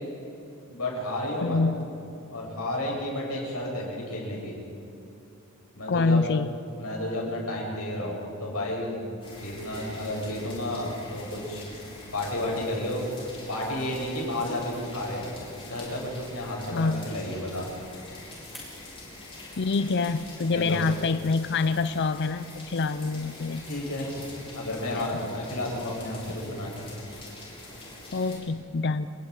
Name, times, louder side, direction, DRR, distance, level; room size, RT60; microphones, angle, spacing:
voice 1, 0.7-1.6 2.3-4.5 5.7-6.2 6.8-8.9 9.3-11.6 12.1-13.1 13.5-15.3 15.6-17.7 20.5-20.8 23.7-24.1 24.5-26.9, left 1 dB, 80° left, -2 dB, 7.1 m, -32 dB
voice 2, 1.4-1.9 5.9-6.5 16.7-17.1 19.6-23.7 24.9-25.1 28.1-29.1, left 4 dB, 50° left, 12 dB, 0.5 m, -26 dB
sound 1, 9.2-28.4, left 2 dB, 25° left, 6.9 m, -44 dB
sound 2, 14.5-18.7, equal, ahead, 7.0 m, -54 dB
29.0 x 22.0 x 5.0 m, 2.7 s
head